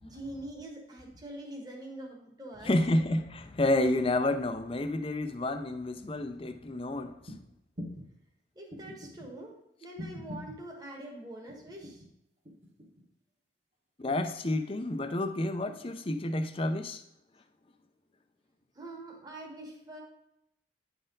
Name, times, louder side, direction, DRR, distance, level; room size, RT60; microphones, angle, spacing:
voice 1, 0.0-2.7 8.5-9.5 9.8-12.0 18.7-20.0, right 1 dB, 20° right, -1 dB, 1.3 m, -44 dB
voice 2, 2.6-7.1 14.0-17.0, left 1 dB, 30° left, 7 dB, 0.6 m, -30 dB
sound 1, 7.3-7.4 7.8-8.1 8.7-9.3 10.0-10.6 11.5-12.1 12.4-13.1 14.1-14.7 15.7-15.8, equal, 40° right, 1.5 m, -43 dB
9.9 x 4.3 x 3.8 m, 0.82 s
head